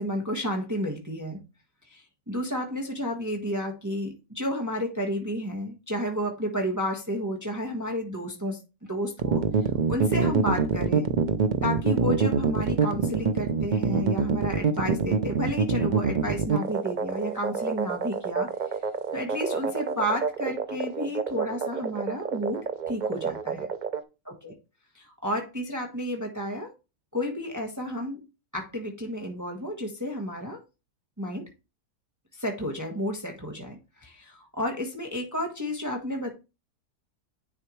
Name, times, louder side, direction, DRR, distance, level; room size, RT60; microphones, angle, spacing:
voice 1, 0.0-1.4 1.9-8.6 8.9-9.4 9.9-11.1 11.6-18.5 19.1-23.6 24.3-24.5 24.9-26.7 27.1-28.2 28.5-30.6 31.2-31.5 32.4-36.3, equal, 10° right, 1.3 m, -31 dB
sound 1, 9.2-24.0, right 5 dB, 50° right, 0.5 m, -26 dB
9.9 x 4.4 x 3.2 m
omnidirectional pair, 1.6 m